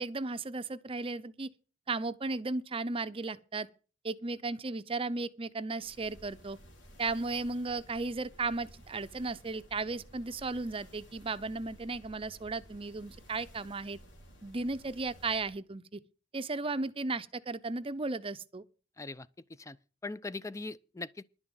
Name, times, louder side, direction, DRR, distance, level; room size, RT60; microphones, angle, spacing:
voice 1, 0.0-1.5 1.9-3.7 4.0-6.6 7.0-14.0 14.4-16.0 16.3-18.6, right 3 dB, 30° right, 0.6 m, -35 dB
sound 1, 5.8-15.6, equal, 90° left, 3.5 m, -55 dB
voice 2, 19.0-19.3 19.6-19.8 20.0-21.2, left 3 dB, 15° left, 0.5 m, -40 dB
11.0 x 6.2 x 8.9 m
head